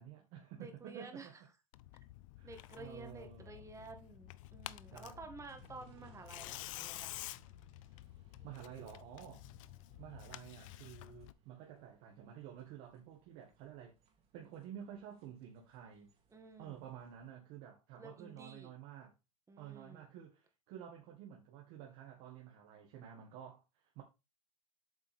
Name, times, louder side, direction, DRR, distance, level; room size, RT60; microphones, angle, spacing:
voice 1, 0.0-1.3 2.4-3.8 4.9-5.3 8.4-9.4 10.0-14.0 14.3-16.1 16.6-19.1 19.6-23.6 24.0-24.1, right 9 dB, 60° right, 1.8 m, -51 dB
voice 2, 0.6-1.3 2.4-7.2 16.3-16.8 18.0-18.7 19.5-20.0, right 3 dB, 15° right, 1.6 m, -52 dB
Tearing, 1.7-11.3, left 17 dB, 70° left, 0.5 m, -50 dB
sound 1, 5.5-17.3, right 6 dB, 35° right, 2.7 m, -68 dB
7.9 x 5.3 x 3.6 m
supercardioid pair, 120°, 17 cm